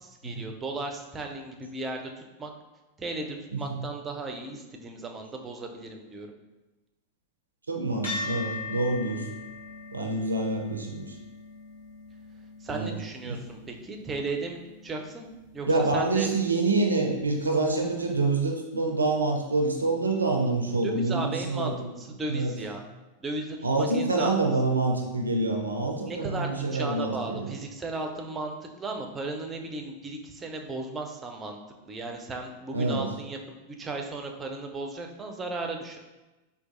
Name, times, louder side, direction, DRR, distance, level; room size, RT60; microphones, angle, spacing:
voice 1, 0.0-2.5 3.0-6.3 12.6-16.3 20.8-21.7 22.0-22.8 23.2-24.3 26.1-31.6 31.8-33.4 33.8-36.0, right 3 dB, 20° right, 3 dB, 0.4 m, -35 dB
voice 2, 3.5-3.9 7.7-9.3 9.9-11.2 12.7-12.9 13.2-13.4 15.7-21.7 22.3-22.5 23.6-27.5 32.7-33.1, right 2 dB, 80° right, 2 dB, 0.4 m, -26 dB
sound 1, 8.0-16.7, left 3 dB, 80° left, 1.1 m, -41 dB
4.5 x 2.3 x 2.5 m, 1.1 s
figure-of-eight pair, 90°, 0 cm